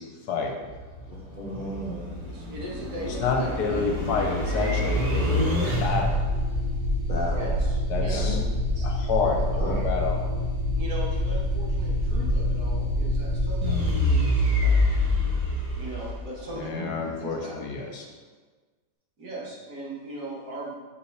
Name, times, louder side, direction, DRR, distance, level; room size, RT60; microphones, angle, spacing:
sound 1, 0.6-16.6, left 1 dB, 40° right, 0.5 m, -26 dB
voice 1, 1.1-2.2 7.1-7.5 7.9-8.4 8.7-8.9 9.6-9.8 16.5-16.9, equal, 35° left, -6 dB, 0.8 m, -35 dB
voice 2, 2.3-4.7 7.3-8.3 10.8-15.0 15.8-16.7 17.2-17.7 19.2-20.8, right 2 dB, 60° right, -5 dB, 1.7 m, -39 dB
voice 3, 3.2-5.6 5.8-6.1 7.9-8.4 8.8-10.2 16.6-18.1, left 4 dB, 70° left, 2 dB, 1.2 m, -28 dB
5.4 x 5.3 x 3.3 m, 1.3 s
omnidirectional pair, 1.9 m